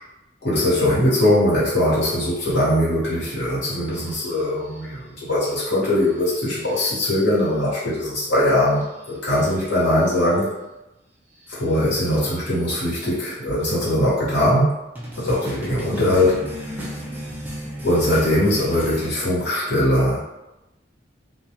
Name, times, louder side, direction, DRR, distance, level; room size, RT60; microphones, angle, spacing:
voice 1, 0.4-10.5 11.5-14.8 15.2-16.7 17.8-20.2, left 1 dB, 70° left, -9 dB, 1.1 m, -21 dB
sound 1, 3.9-4.8 6.1-7.0 7.3-7.5 8.8-10.2 11.4-12.8 15.0-19.1, equal, 10° right, 0.4 m, -36 dB
2.3 x 2.1 x 2.8 m, 0.99 s
head